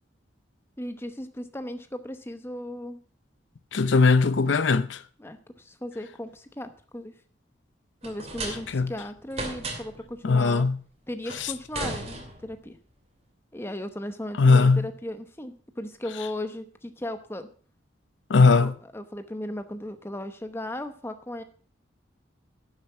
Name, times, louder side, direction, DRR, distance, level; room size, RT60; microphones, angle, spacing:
voice 1, 0.8-3.0 5.2-7.1 8.0-10.7 11.1-12.8 13.5-17.5 18.6-21.4, left 1 dB, 15° left, 0.9 m, -36 dB
voice 2, 3.7-5.0 8.7-8.9 10.2-10.8 11.4-11.5 14.4-14.9 18.3-18.7, left 4 dB, 75° left, 0.6 m, -19 dB
sound 1, 8.0-8.9 9.3-10.1 11.3-12.7, right 2 dB, 35° right, 2.7 m, -35 dB
11.5 x 7.5 x 5.7 m
head